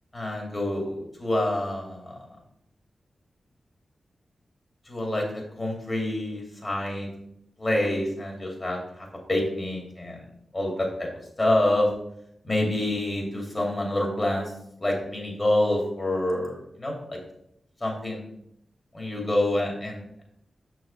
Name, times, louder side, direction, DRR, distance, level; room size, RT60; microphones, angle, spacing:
voice 1, 0.1-2.2 4.9-5.3 5.5-7.1 7.6-10.2 10.5-11.1 11.4-11.9 12.4-14.5 14.8-17.2 17.8-18.2 18.9-20.2, left 1 dB, 40° left, 0 dB, 2.8 m, -27 dB
6.7 x 6.1 x 3.4 m, 0.74 s
cardioid pair, 45°, 0 cm